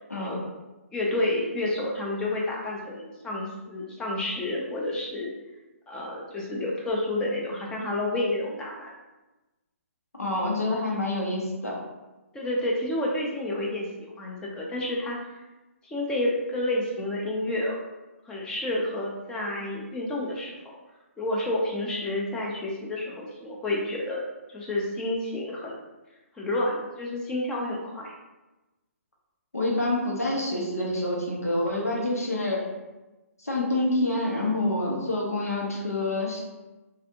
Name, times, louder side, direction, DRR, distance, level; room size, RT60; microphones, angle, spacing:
voice 1, 0.9-5.3 5.9-8.9 12.3-15.2 15.8-17.8 18.2-20.6 21.2-24.2 24.5-25.8 26.4-28.1, left 1 dB, 10° left, -3 dB, 0.5 m, -29 dB
voice 2, 10.2-11.8 29.5-32.7 33.4-36.4, left 1 dB, 90° left, -3 dB, 1.0 m, -27 dB
3.2 x 2.4 x 2.7 m, 1.1 s
figure-of-eight pair, 135°, 8 cm